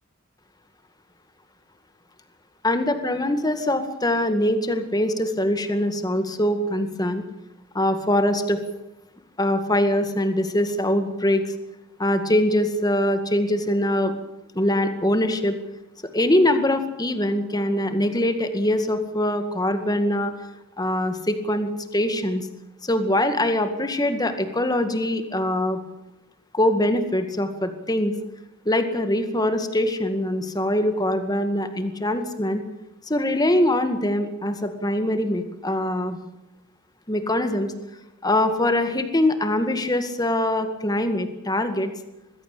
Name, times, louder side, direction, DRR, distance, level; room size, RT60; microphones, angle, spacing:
voice 1, 2.6-7.2 7.7-8.6 9.4-11.5 12.0-14.1 14.6-15.6 16.0-20.3 20.8-22.5 22.8-25.8 26.5-28.1 28.7-32.6 33.1-36.2 37.1-37.7 38.2-41.9, left 1 dB, 20° left, 8 dB, 2.0 m, -23 dB
21.0 x 16.0 x 8.6 m, 0.93 s
head